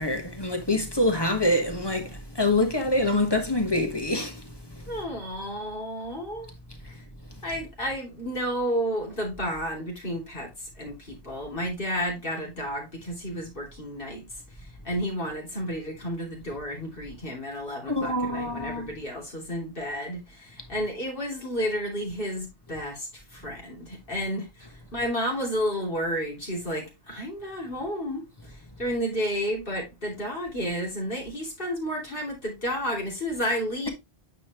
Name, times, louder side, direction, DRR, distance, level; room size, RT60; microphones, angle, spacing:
voice 1, 0.0-4.4 4.7-4.8 17.9-18.9, left 1 dB, 25° left, 1.3 m, -25 dB
voice 2, 4.9-6.5 6.8-7.0 7.4-14.3 14.8-24.5 24.9-33.9, equal, 60° left, 2.9 m, -31 dB
9.4 x 4.2 x 3.0 m
omnidirectional pair, 1.0 m